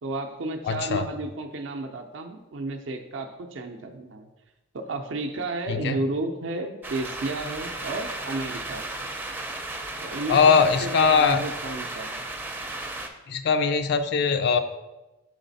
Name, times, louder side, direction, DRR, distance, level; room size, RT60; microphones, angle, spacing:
voice 1, 0.0-4.3 4.7-8.9 10.0-10.5 10.8-12.2, right 2 dB, 75° right, 5 dB, 0.5 m, -32 dB
voice 2, 0.6-1.1 5.7-6.0 10.3-11.4 13.3-14.6, left 5 dB, 55° left, 9 dB, 0.3 m, -21 dB
sound 1, 6.8-13.1, right 2 dB, 10° right, 0.4 m, -35 dB
6.5 x 4.0 x 4.0 m, 1.1 s
head